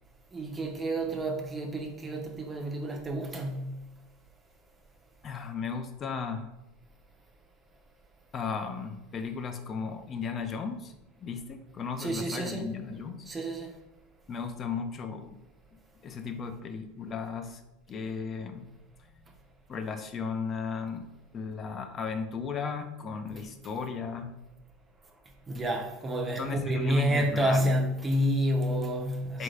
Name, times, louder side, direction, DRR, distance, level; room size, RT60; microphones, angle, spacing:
voice 1, 0.3-3.7 12.0-12.7 13.3-13.7 25.5-29.4, equal, 20° right, 0.5 m, -29 dB
voice 2, 5.2-6.5 8.3-10.9 11.2-13.3 14.3-15.4 16.0-17.6 17.9-18.7 19.7-21.1 21.3-24.4 26.4-27.7 29.3-29.4, left 5 dB, 30° left, 0.4 m, -35 dB
4.5 x 2.5 x 3.2 m
supercardioid pair, 125°, 0 cm